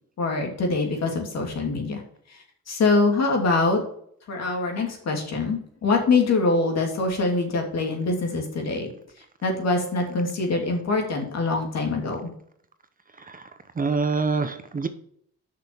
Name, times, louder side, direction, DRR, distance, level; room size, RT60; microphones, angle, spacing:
voice 1, 0.2-2.0 2.3-3.8 4.3-8.9 9.4-12.3, left 3 dB, 60° left, 2 dB, 2.8 m, -24 dB
voice 2, 13.8-14.9, right 4 dB, 30° right, 10 dB, 0.8 m, -25 dB
6.3 x 6.2 x 7.1 m, 0.66 s
cardioid pair, 90°, 30 cm